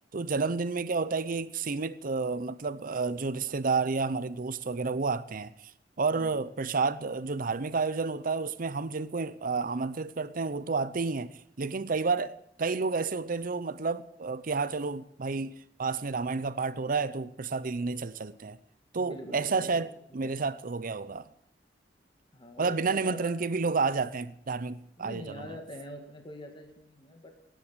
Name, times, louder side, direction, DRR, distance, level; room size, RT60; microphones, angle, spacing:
voice 1, 0.1-5.7 6.0-11.3 11.6-18.6 18.9-19.9 20.1-21.3 22.6-25.6, right 4 dB, 50° right, 0.7 m, -30 dB
voice 2, 19.0-19.9 20.2-20.3 22.3-23.4 25.0-27.3, left 1 dB, 30° left, 2.1 m, -44 dB
17.5 x 10.5 x 6.2 m
head